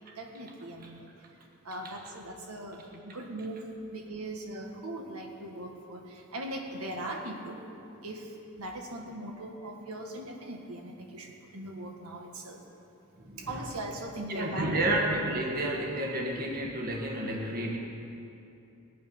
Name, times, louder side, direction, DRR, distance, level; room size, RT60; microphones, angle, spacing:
voice 1, 0.2-1.1 1.6-3.7 3.9-7.6 8.0-12.6 13.4-14.6, right 1 dB, 90° right, 1 dB, 1.5 m, -40 dB
voice 2, 13.2-13.7 14.3-17.8, right 1 dB, 40° right, 0 dB, 1.4 m, -31 dB
19.5 x 8.6 x 5.3 m, 2.8 s
head